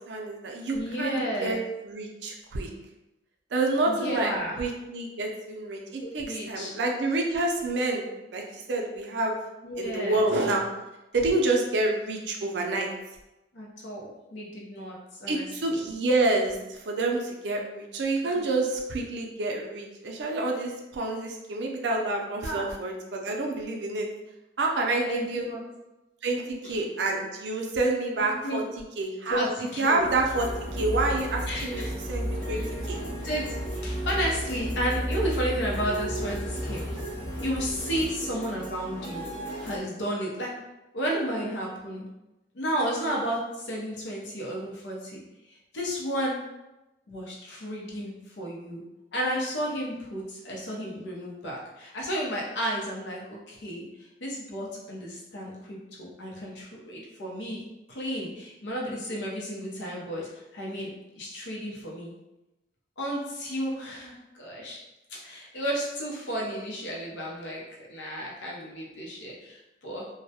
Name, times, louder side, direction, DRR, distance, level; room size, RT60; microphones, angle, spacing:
voice 1, 0.0-2.7 3.5-9.4 9.8-10.6 11.1-12.9 15.3-24.1 24.6-25.5 26.2-33.0, right 2 dB, 75° right, 1 dB, 0.4 m, -28 dB
voice 2, 0.7-1.6 3.9-4.6 6.0-6.7 9.6-10.2 13.5-15.9 18.2-18.5 22.4-22.7 25.1-25.6 26.6-26.8 28.2-28.7 29.3-30.1 31.5-31.9 32.5-32.7 33.2-36.8 37.4-39.2 39.6-40.5 40.9-42.1 42.5-45.2 45.7-46.4 47.1-48.8 49.1-57.6 57.9-62.1 63.0-64.8 65.1-67.6 67.9-70.1, equal, 90° left, -3 dB, 0.7 m, -33 dB
sound 1, 30.0-38.1, equal, 5° left, 0.6 m, -34 dB
sound 2, 30.3-39.8, right 1 dB, 50° left, 0.9 m, -38 dB
2.2 x 2.0 x 2.7 m, 0.98 s
head